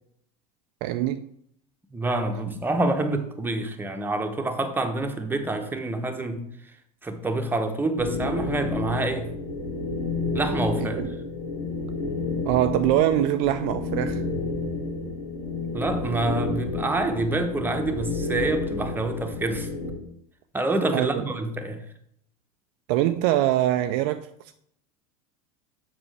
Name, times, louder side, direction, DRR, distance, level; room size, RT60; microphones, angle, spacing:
voice 1, 0.8-1.3 11.0-11.1 12.4-14.2 20.9-21.2 22.9-24.3, right 13 dB, 50° right, 0.4 m, -23 dB
voice 2, 1.9-6.5 7.0-9.3 10.3-11.0 15.7-19.7 20.5-21.8, right 2 dB, 10° right, 0.9 m, -27 dB
sound 1, 8.0-19.9, left 3 dB, 85° left, 2.9 m, -30 dB
7.1 x 5.5 x 3.3 m
hypercardioid pair, 85°, 20 cm